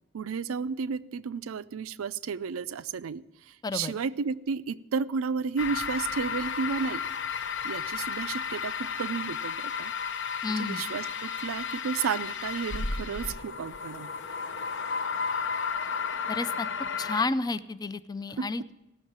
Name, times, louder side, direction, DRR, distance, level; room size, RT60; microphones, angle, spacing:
voice 1, 0.1-7.0 7.6-9.9 10.5-14.1 18.4-18.5, right 5 dB, 70° right, 15 dB, 0.4 m, -32 dB
voice 2, 3.6-4.0 10.4-10.8 16.3-16.7 17.0-18.7, left 3 dB, 20° left, 13 dB, 0.4 m, -31 dB
sound 1, 5.6-17.3, left 6 dB, 55° left, 0.6 m, -33 dB
15.5 x 6.3 x 8.6 m, 0.97 s
head